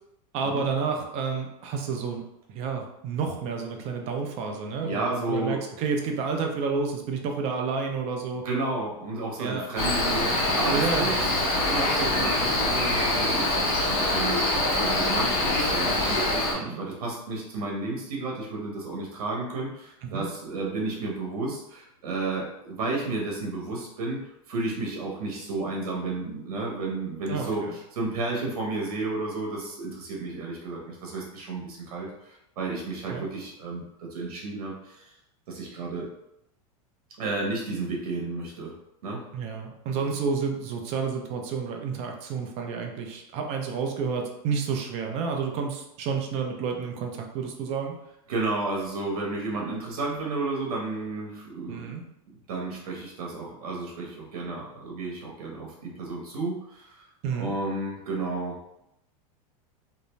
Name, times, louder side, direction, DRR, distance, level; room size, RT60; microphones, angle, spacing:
voice 1, 0.3-2.2 2.5-8.4 9.4-9.6 10.7-11.2 16.5-16.8 20.0-20.3 27.3-27.7 33.1-33.3 39.3-48.0 51.7-52.0 57.2-57.5, right 5 dB, 35° right, 3 dB, 0.4 m, -30 dB
voice 2, 4.8-5.6 8.4-24.2 24.5-35.1 35.5-36.1 37.2-38.7 39.0-39.2 48.3-51.9 52.5-57.1 57.4-58.6, right 3 dB, 85° right, -2 dB, 0.9 m, -32 dB
Cricket, 9.8-16.5, left 2 dB, 35° left, 1.0 m, -24 dB
2.5 x 2.1 x 3.0 m, 0.83 s
supercardioid pair, 150°, 19 cm